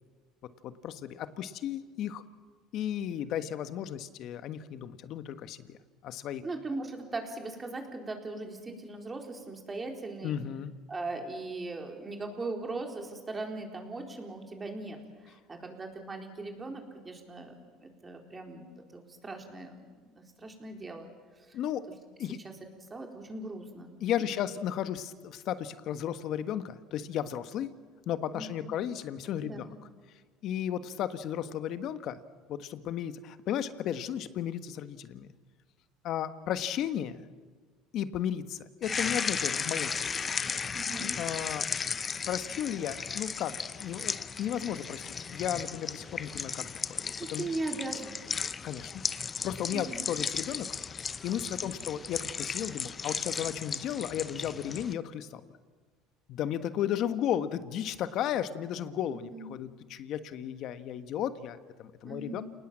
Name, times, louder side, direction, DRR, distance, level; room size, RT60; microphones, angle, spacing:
voice 1, 0.6-2.2 2.7-5.8 6.0-6.4 10.2-10.7 21.5-21.8 22.2-22.4 24.0-27.7 28.1-29.6 30.4-32.2 32.5-35.3 36.0-37.2 37.9-40.3 41.2-41.7 42.3-46.6 46.9-47.0 47.3-47.5 48.6-50.7 51.2-55.4 56.3-62.4, left 10 dB, 60° left, 12 dB, 1.3 m, -34 dB
voice 2, 6.4-10.4 10.9-21.1 21.4-21.6 22.4-22.6 22.9-24.4 28.3-28.7 29.4-29.7 40.7-41.1 47.2-48.2 49.7-50.0 59.1-59.5 62.0-62.4, right 2 dB, 25° right, 3 dB, 4.2 m, -39 dB
sound 1, 38.8-54.9, left 5 dB, 30° left, 0.7 m, -35 dB
29.5 x 19.0 x 7.5 m, 1.5 s
supercardioid pair, 100°, 0 cm